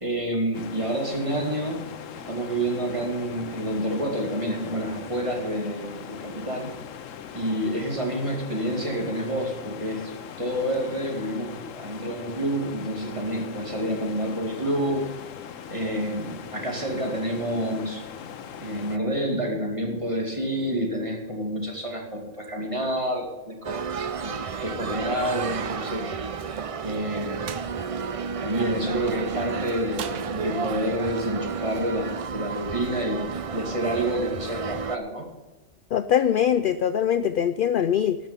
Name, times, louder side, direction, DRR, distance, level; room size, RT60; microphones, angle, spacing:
voice 1, 0.0-1.9 2.3-6.7 7.3-10.1 10.4-15.0 15.7-18.0 18.6-23.9 24.2-26.1 26.8-27.6 28.4-35.3, right 1 dB, 25° right, 0 dB, 2.3 m, -28 dB
sound 1, 0.5-19.0, left 8 dB, 85° left, 1.1 m, -41 dB
sound 2, 23.6-35.0, right 5 dB, 50° right, 0.4 m, -32 dB
sound 3, 27.5-27.7 30.0-30.9, right 9 dB, 70° right, 1.0 m, -39 dB
voice 2, 35.9-38.2, left 9 dB, 60° left, 12 dB, 0.5 m, -22 dB
12.0 x 6.5 x 9.5 m, 1.1 s
omnidirectional pair, 1.3 m